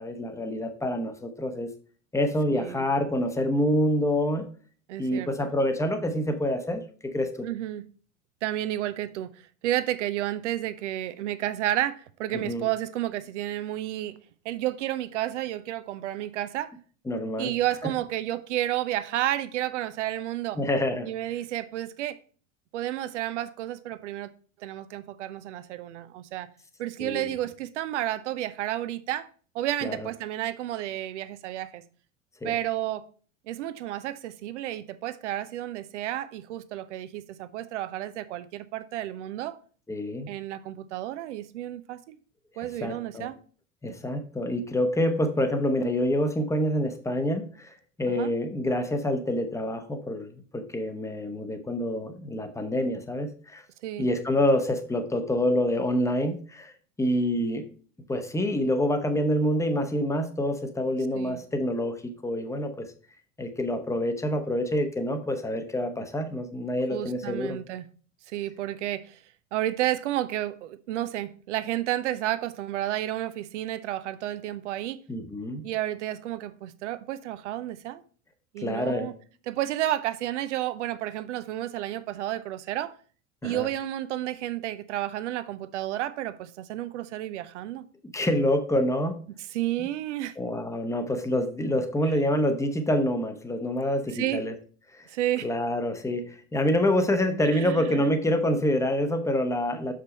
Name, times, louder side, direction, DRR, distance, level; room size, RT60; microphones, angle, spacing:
voice 1, 0.0-1.7 2.1-4.5 5.0-7.5 12.3-12.7 17.1-17.5 17.8-17.9 20.6-21.1 27.0-27.3 29.8-30.0 32.4-32.6 39.9-40.3 42.8-43.3 43.8-53.6 54.0-56.7 57.0-57.7 58.1-62.9 63.4-67.6 75.1-75.7 78.6-79.1 83.4-83.7 88.1-89.2 90.4-94.5 94.9-95.1 95.4-99.9, left 1 dB, 10° left, 1.0 m, -27 dB
voice 2, 2.5-2.9 4.9-5.5 7.4-7.9 8.4-9.3 9.6-14.2 14.4-16.7 17.4-20.6 21.0-22.2 22.7-24.3 24.6-26.5 26.8-29.3 29.5-31.8 32.4-33.0 33.5-39.6 40.3-42.2 42.6-43.4 48.1-48.3 53.8-54.1 61.1-61.4 66.9-67.8 68.3-69.2 69.5-75.0 75.6-78.0 78.5-79.1 79.5-82.9 83.4-87.8 89.5-90.3 94.1-94.4 95.1-95.5 97.5-98.1, right 13 dB, 65° right, 0.7 m, -31 dB
6.6 x 5.1 x 4.2 m
figure-of-eight pair, 75°, 38 cm